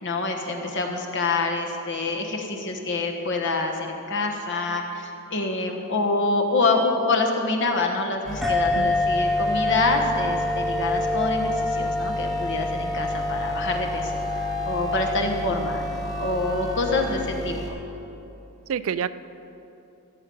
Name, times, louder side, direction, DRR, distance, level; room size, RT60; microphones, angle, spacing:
voice 1, 0.0-15.8 16.2-17.8, left 3 dB, 55° left, 3 dB, 1.3 m, -26 dB
sound 1, 8.2-17.7, left 1 dB, 15° left, 2.1 m, -33 dB
sound 2, 8.4-17.5, left 1 dB, ahead, 0.9 m, -28 dB
voice 2, 18.7-19.1, right 7 dB, 65° right, 14 dB, 0.4 m, -29 dB
16.0 x 7.8 x 5.4 m, 2.9 s
head